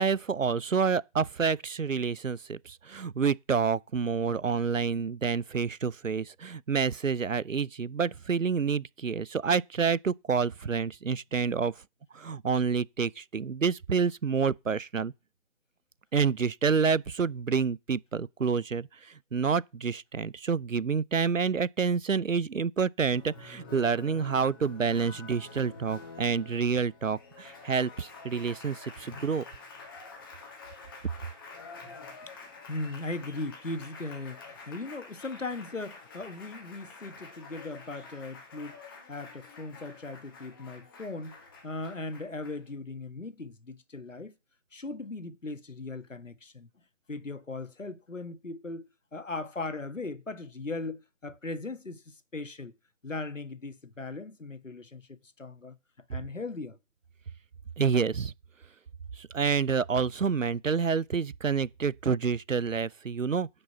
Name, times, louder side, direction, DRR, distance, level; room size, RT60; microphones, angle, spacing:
voice 1, 0.0-11.7 12.1-15.1 16.1-29.4 57.8-58.3 59.2-63.5, right 5 dB, 90° right, 0.7 m, -28 dB
Applause, 23.1-42.7, left 4 dB, 15° left, 1.8 m, -48 dB
voice 2, 32.2-38.8 39.1-41.3 41.6-44.3 44.7-46.7 47.1-52.7 53.0-56.8, left 3 dB, 80° left, 1.5 m, -38 dB
10.5 x 5.4 x 7.1 m
figure-of-eight pair, 155°, 37 cm